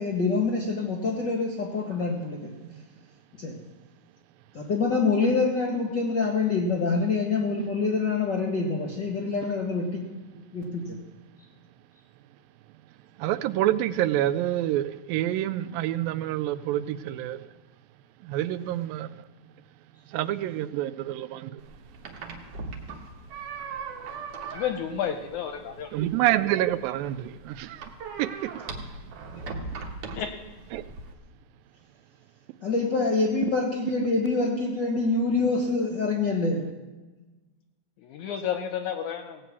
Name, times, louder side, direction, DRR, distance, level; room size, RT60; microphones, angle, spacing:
voice 1, 0.0-2.5 3.4-3.6 4.5-10.1 10.5-11.0 32.6-36.7, left 3 dB, 55° left, 0 dB, 1.2 m, -26 dB
voice 2, 13.2-17.5 18.2-19.3 20.1-21.6 25.9-27.9 28.2-28.6 30.7-30.8, right 13 dB, 85° right, 14 dB, 2.3 m, -27 dB
sound 1, 21.6-31.1, right 4 dB, 60° right, 2.0 m, -40 dB
voice 3, 24.5-25.9 30.2-30.3 38.0-39.4, left 8 dB, 75° left, 6 dB, 1.9 m, -31 dB
17.5 x 6.1 x 8.3 m, 1.2 s
omnidirectional pair, 4.1 m